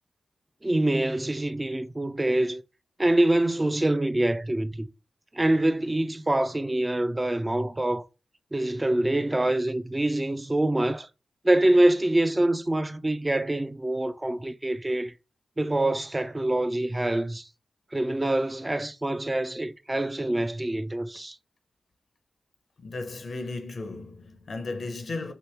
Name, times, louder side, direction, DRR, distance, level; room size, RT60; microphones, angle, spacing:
voice 1, 0.6-2.6 3.0-4.9 5.3-8.0 8.5-11.1 11.4-15.1 15.6-17.5 17.9-21.4, right 1 dB, 20° right, 0.4 m, -25 dB
voice 2, 22.8-25.3, left 3 dB, 65° left, 0.6 m, -35 dB
2.9 x 2.8 x 3.4 m
cardioid pair, 55°, 0 cm